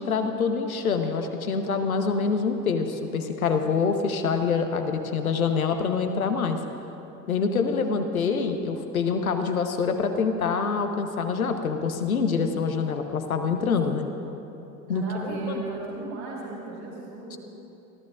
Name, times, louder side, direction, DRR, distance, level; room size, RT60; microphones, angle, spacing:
voice 1, 0.0-6.6 7.3-14.0 14.9-15.6 17.3-17.4, left 5 dB, 80° left, 6 dB, 1.0 m, -26 dB
voice 2, 13.8-14.3 14.9-17.4, right 3 dB, 80° right, -11 dB, 3.8 m, -36 dB
24.5 x 13.5 x 2.4 m, 3.0 s
figure-of-eight pair, 70°, 42 cm